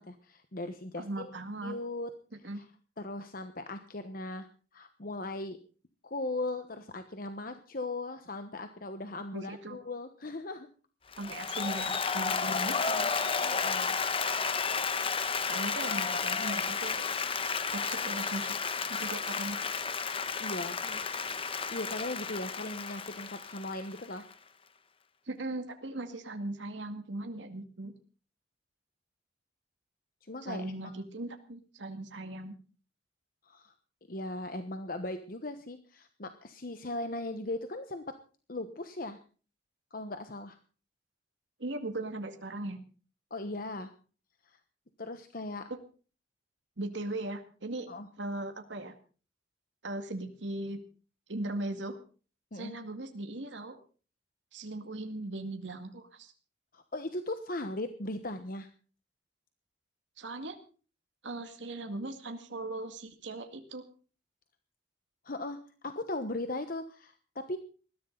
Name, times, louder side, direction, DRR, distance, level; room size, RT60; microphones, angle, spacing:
voice 1, 0.0-1.3 1.6-2.1 2.5-2.7 3.0-4.5 4.7-5.6 6.0-10.7 13.4-14.0 20.4-21.0 21.7-24.3 30.2-30.6 33.4-33.7 34.1-38.2 38.5-39.2 39.9-40.6 43.3-43.9 44.5-44.6 45.0-45.7 47.9-48.1 52.5-52.8 56.7-58.7 65.2-65.6 65.8-67.6, left 2 dB, 50° left, 8 dB, 1.2 m, -38 dB
voice 2, 1.0-1.8 2.4-2.6 9.3-9.8 11.2-13.3 15.5-17.1 17.7-18.5 18.9-19.7 25.3-27.9 30.4-32.6 41.6-42.8 46.8-47.9 48.2-48.9 49.8-50.8 51.3-52.0 52.5-53.8 54.5-56.3 60.2-60.6 61.2-63.8, right 2 dB, 85° right, 6 dB, 2.1 m, -38 dB
Applause, 11.1-24.3, left 5 dB, 30° left, 1.1 m, -32 dB
20.5 x 14.5 x 4.0 m, 0.39 s
head